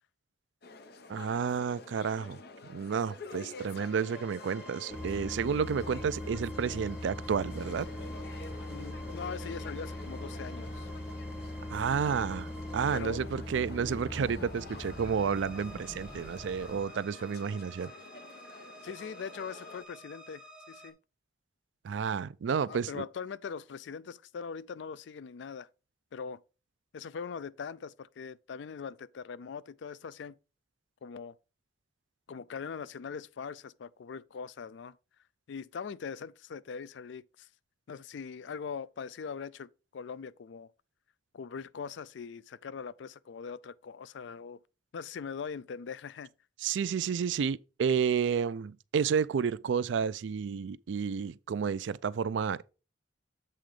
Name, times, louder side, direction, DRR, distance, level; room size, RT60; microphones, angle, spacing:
sound 1, 0.6-19.8, left 3 dB, 60° left, 0.7 m, -49 dB
voice 1, 1.1-2.4 2.7-7.9 11.7-17.9 21.8-23.0 46.6-52.7, right 6 dB, 80° right, 0.4 m, -31 dB
sound 2, 3.5-20.9, equal, 5° right, 0.8 m, -52 dB
sound 3, 4.9-16.8, left 1 dB, 15° left, 1.7 m, -41 dB
voice 2, 8.7-10.9 12.9-13.3 18.8-21.0 22.7-25.7 26.1-26.4 26.9-30.4 31.0-31.4 32.3-35.0 35.5-37.5 37.9-40.7 41.3-44.6 44.9-46.3, left 6 dB, 75° left, 0.4 m, -41 dB
7.7 x 3.8 x 4.9 m
head